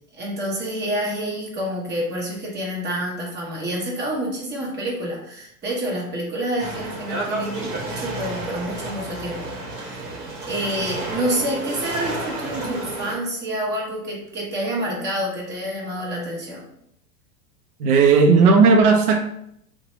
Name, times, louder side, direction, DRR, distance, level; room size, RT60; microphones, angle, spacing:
voice 1, 0.2-9.6 9.8-10.0 10.4-16.6, right 1 dB, 25° right, -3 dB, 1.0 m, -28 dB
sound 1, 6.6-13.1, right 2 dB, 55° right, 1.1 m, -31 dB
voice 2, 17.8-19.2, right 4 dB, 90° right, 4 dB, 0.5 m, -14 dB
2.9 x 2.2 x 2.9 m, 0.72 s
hypercardioid pair, 115°, 43 cm